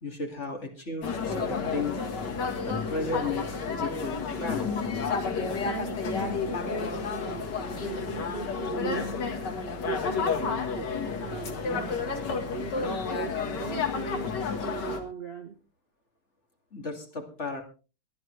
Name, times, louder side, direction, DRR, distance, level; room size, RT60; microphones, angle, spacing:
voice 1, 0.0-2.0 2.6-3.5 3.8-4.7 12.8-13.0 16.7-17.6, left 3 dB, 35° left, 3 dB, 2.5 m, -34 dB
sound 1, 1.0-15.0, left 5 dB, 55° left, 2.2 m, -31 dB
Wind instrument woodwind instrument, 4.3-9.8, left 5 dB, 90° left, 6.2 m, -44 dB
voice 2, 5.6-9.1 9.8-10.9 11.2-15.6, right 5 dB, 40° right, 6 dB, 1.1 m, -39 dB
22.0 x 10.5 x 3.3 m, 0.32 s
omnidirectional pair, 2.3 m